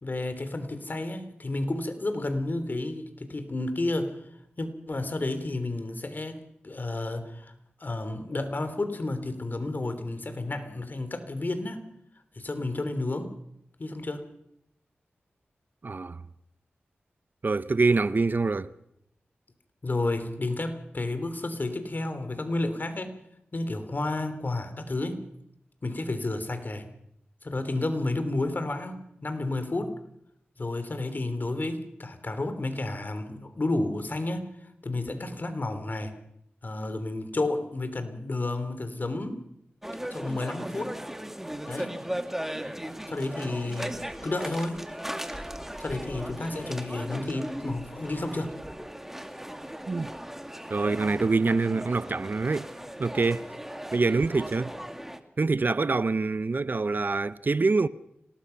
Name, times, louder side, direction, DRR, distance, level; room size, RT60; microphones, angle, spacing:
voice 1, 0.0-4.1 4.6-7.5 7.8-11.8 12.3-13.3 13.8-14.3 19.8-23.2 23.5-25.3 25.8-26.9 27.4-29.9 30.6-34.5 34.8-36.2 36.6-39.4 40.1-40.9 41.7-41.9 43.1-44.8 45.8-48.5, left 2 dB, 50° left, 3.3 m, -31 dB
voice 2, 15.8-16.2 17.4-18.7 49.9-50.1 50.7-52.7 53.0-53.4 53.9-54.8 55.4-57.9, right 3 dB, 50° right, 0.8 m, -25 dB
sound 1, 39.8-55.2, equal, 10° right, 2.2 m, -37 dB
26.5 x 19.0 x 5.9 m
cardioid pair, 55°, 4 cm